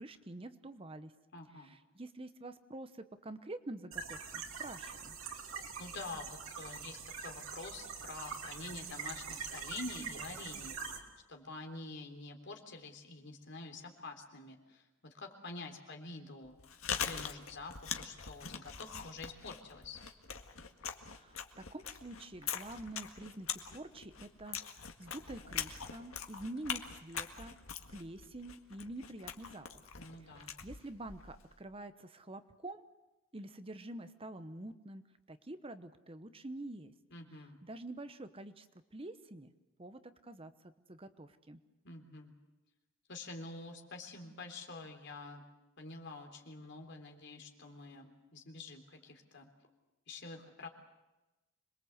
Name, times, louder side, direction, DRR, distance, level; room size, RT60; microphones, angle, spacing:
voice 1, 0.0-1.1 1.5-5.2 21.1-27.5 27.9-29.9 30.2-32.8 33.3-35.0 35.3-36.9 37.3-38.7 38.9-39.5 39.8-41.6, right 2 dB, 25° right, 11 dB, 0.9 m, -47 dB
voice 2, 1.3-1.7 5.8-11.0 11.3-16.6 17.0-20.0 30.0-30.5 37.1-37.6 41.8-42.3 43.1-45.4 45.8-49.5 50.1-50.7, left 3 dB, 55° left, 3 dB, 3.4 m, -47 dB
sound 1, 3.9-11.0, right 6 dB, 85° right, 3.2 m, -44 dB
Chewing mastication, 16.4-31.5, left 7 dB, 80° left, 1.8 m, -43 dB
26.5 x 21.5 x 8.1 m, 1.0 s
head